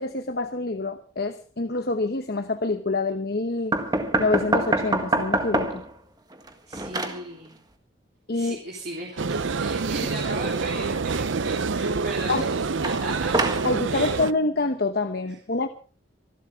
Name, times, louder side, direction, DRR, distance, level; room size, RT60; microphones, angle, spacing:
voice 1, 0.0-3.8 4.2-5.8 8.3-8.6 12.3-12.4 13.6-15.7, left 3 dB, 50° left, 8 dB, 0.9 m, -26 dB
sound 1, 3.7-5.9 6.3-7.2 12.8-13.7, right 2 dB, 20° right, 1.7 m, -25 dB
voice 2, 6.7-7.6 8.3-13.4 13.9-14.1, right 2 dB, 50° right, -1 dB, 3.4 m, -36 dB
sound 2, 9.2-14.3, right 4 dB, 70° right, 0.6 m, -27 dB
25.5 x 12.0 x 3.6 m, 0.38 s
head